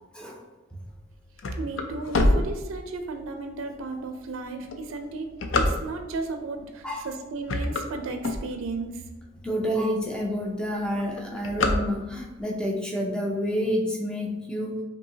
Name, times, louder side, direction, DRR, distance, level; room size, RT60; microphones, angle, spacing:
sound 1, 0.9-3.2 3.8-3.9 4.5-6.3 6.9-7.1 7.4-8.9 9.4-9.5 9.8-9.9 10.2-10.5 10.8-12.4, left 2 dB, 65° left, 0.4 m, -26 dB
voice 1, 1.6-9.0, right 3 dB, 75° right, 5 dB, 0.4 m, -34 dB
voice 2, 9.4-14.8, equal, 5° left, -1 dB, 0.5 m, -28 dB
5.5 x 2.7 x 2.7 m, 1.1 s
head